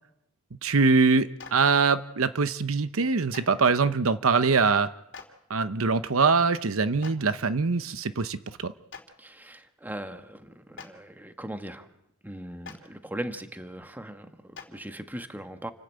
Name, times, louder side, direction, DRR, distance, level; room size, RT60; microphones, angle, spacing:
voice 1, 0.6-4.9 5.5-8.7, right 4 dB, 70° right, 12 dB, 0.8 m, -23 dB
Clapping, 1.4-1.5 3.3-3.4 5.1-5.2 7.0-7.1 8.9-9.0 10.7-10.9 12.6-12.7 14.5-14.6, left 5 dB, 60° left, 3.1 m, -41 dB
voice 2, 9.2-11.9 12.2-15.7, right 1 dB, 10° right, 7 dB, 1.3 m, -39 dB
28.5 x 12.0 x 8.2 m, 0.88 s
head